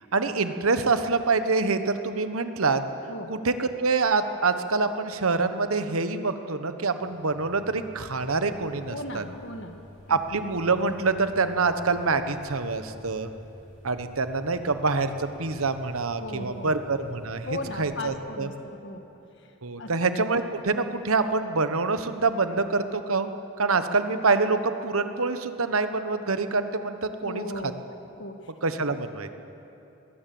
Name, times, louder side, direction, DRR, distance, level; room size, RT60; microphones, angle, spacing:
voice 1, 0.1-2.8 3.3-9.2 10.1-13.3 13.8-18.5 19.6-23.3 23.6-27.4 28.6-29.3, right 4 dB, 75° right, 9 dB, 1.1 m, -26 dB
sound 1, 7.0-18.0, left 1 dB, 35° left, 5.4 m, -50 dB
voice 2, 8.7-9.8 10.1-10.2 16.2-16.7 17.5-19.1 19.8-19.9 27.2-27.9 28.2-28.4, left 1 dB, 55° left, 5 dB, 1.7 m, -36 dB
21.5 x 17.0 x 7.8 m, 2.8 s
head